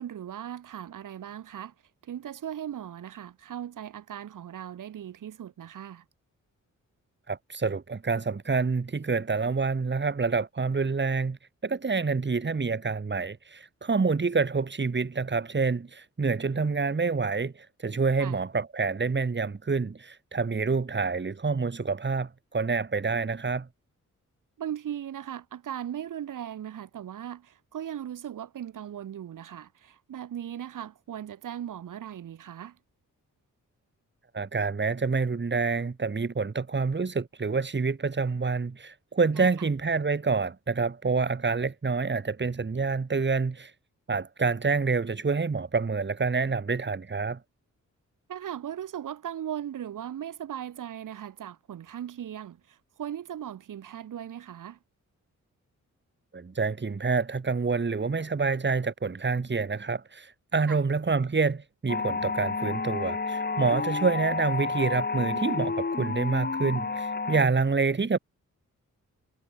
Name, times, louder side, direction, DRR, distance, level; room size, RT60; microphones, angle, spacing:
voice 1, 0.0-1.7 2.0-6.0 18.2-18.4 24.6-32.8 39.4-39.5 48.3-54.8 60.7-60.8, right 10 dB, 90° right, 1.9 m, -38 dB
voice 2, 7.3-11.4 11.6-23.7 34.3-43.7 44.1-47.4 56.3-68.2, right 4 dB, 35° right, 3.0 m, -27 dB
sound 1, 61.9-67.5, left 4 dB, 30° left, 2.1 m, -30 dB
cardioid pair, 80°, 31 cm